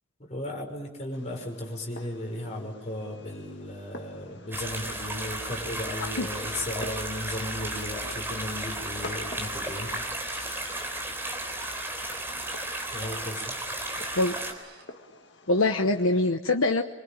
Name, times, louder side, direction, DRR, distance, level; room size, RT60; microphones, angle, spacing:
voice 1, 0.2-9.9 10.3-10.6 12.9-13.6, left 1 dB, 35° left, 1 dB, 6.1 m, -36 dB
Fireworks, 1.1-16.3, left 2 dB, 55° left, 2.1 m, -49 dB
sound 1, 4.5-14.5, right 1 dB, 10° right, 4.0 m, -34 dB
sound 2, 4.8-14.9, right 5 dB, 55° right, 4.9 m, -53 dB
voice 2, 13.9-14.4 15.5-16.8, left 2 dB, 85° left, 4 dB, 1.1 m, -24 dB
27.0 x 23.0 x 9.0 m, 1.1 s
head